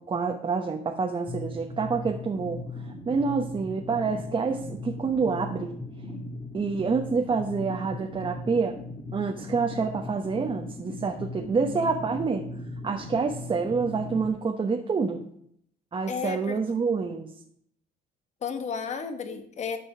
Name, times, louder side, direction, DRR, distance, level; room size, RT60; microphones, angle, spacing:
voice 1, 0.0-2.6 3.1-5.8 6.5-8.8 9.1-12.4 12.8-15.2 15.9-17.3, right 5 dB, 30° right, 2 dB, 1.1 m, -27 dB
sound 1, 1.3-14.3, left 2 dB, 20° left, 1.7 m, -38 dB
voice 2, 11.4-11.9 16.1-16.6 18.4-19.8, left 6 dB, 40° left, 9 dB, 1.3 m, -33 dB
11.5 x 5.3 x 6.0 m, 0.67 s
cardioid pair, 110°, 17 cm